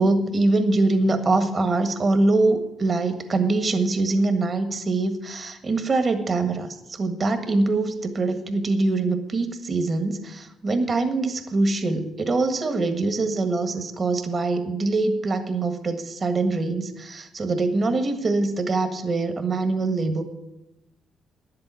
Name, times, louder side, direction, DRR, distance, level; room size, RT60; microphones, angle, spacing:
voice 1, 0.0-20.2, right 3 dB, 40° right, 7 dB, 1.6 m, -23 dB
11.0 x 7.7 x 7.6 m, 0.92 s
cardioid pair, 90°, 0 cm